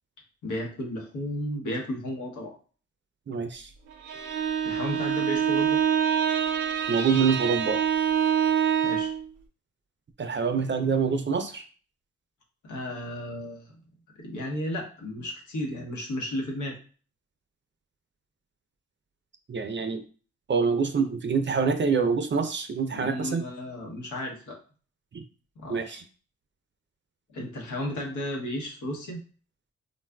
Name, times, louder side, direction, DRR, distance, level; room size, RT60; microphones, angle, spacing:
voice 1, 0.4-2.5 4.6-5.8 8.8-9.1 12.6-13.7 14.2-16.8 22.9-24.6 25.6-26.0 27.3-29.2, left 1 dB, 80° left, 0 dB, 1.0 m, -33 dB
voice 2, 3.3-3.7 6.9-7.9 10.2-11.6 19.5-20.0 20.5-23.4 25.1-25.2 25.7-26.0, right 5 dB, 40° right, 7 dB, 0.5 m, -26 dB
Bowed string instrument, 3.9-9.3, right 8 dB, 80° right, 0.5 m, -25 dB
3.8 x 2.3 x 2.2 m, 0.39 s
supercardioid pair, 50°, 31 cm